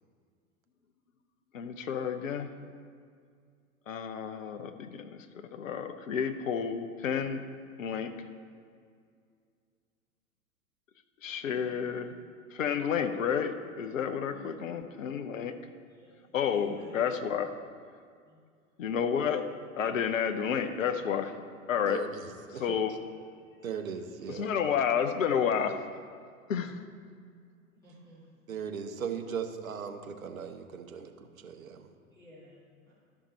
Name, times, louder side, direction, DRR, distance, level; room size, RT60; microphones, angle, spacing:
voice 1, 1.5-2.5 3.9-5.0 5.5-7.4 7.8-8.1 11.2-12.2 12.5-15.5 16.3-17.5 18.8-19.4 19.8-21.3 21.7-22.0 22.6-22.9 24.4-25.8 26.5-26.8, left 7 dB, 65° left, 9 dB, 0.8 m, -30 dB
voice 2, 11.4-11.9 14.3-14.6 15.9-16.1 16.4-17.0 18.2-18.4 27.8-28.2 32.1-32.6 32.9-33.0, right 1 dB, 10° left, -12 dB, 2.3 m, -54 dB
voice 3, 21.9-22.8 23.6-24.5 28.5-31.9, right 7 dB, 70° right, 7 dB, 0.8 m, -38 dB
12.5 x 5.5 x 4.0 m, 2.2 s
figure-of-eight pair, 100°, 43 cm